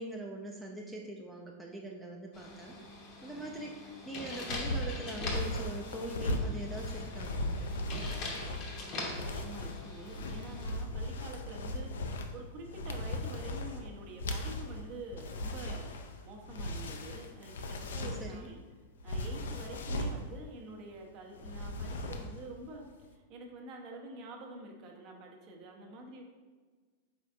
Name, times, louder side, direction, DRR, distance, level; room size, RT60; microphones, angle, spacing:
voice 1, 0.0-2.7 3.2-7.7 18.2-18.5, right 1 dB, 5° right, -2 dB, 0.4 m, -42 dB
sound 1, 2.3-10.7, left 2 dB, 40° left, 0.8 m, -43 dB
sound 2, 4.5-18.5 19.0-20.2 21.3-22.5 22.7-23.0, left 1 dB, 65° left, 0.4 m, -37 dB
voice 2, 8.8-12.1 12.3-18.6 19.0-26.2, right 2 dB, 40° right, 1 dB, 0.7 m, -47 dB
5.2 x 4.1 x 2.5 m, 1.5 s
figure-of-eight pair, 90°, 0 cm